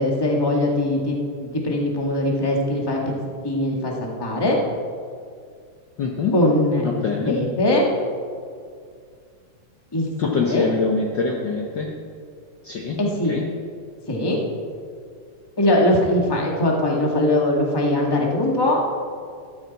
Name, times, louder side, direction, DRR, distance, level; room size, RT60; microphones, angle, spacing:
voice 1, 0.0-3.0 3.4-4.6 6.3-7.9 9.9-10.1 10.4-10.7 13.0-13.3 14.1-14.4 15.6-18.8, left 1 dB, 10° left, -1 dB, 1.1 m, -21 dB
voice 2, 6.0-6.3 6.8-7.4 10.2-11.9 12.6-13.0 13.3-13.4, left 4 dB, 75° left, 0 dB, 1.0 m, -24 dB
14.5 x 13.0 x 4.2 m, 2.2 s
omnidirectional pair, 3.5 m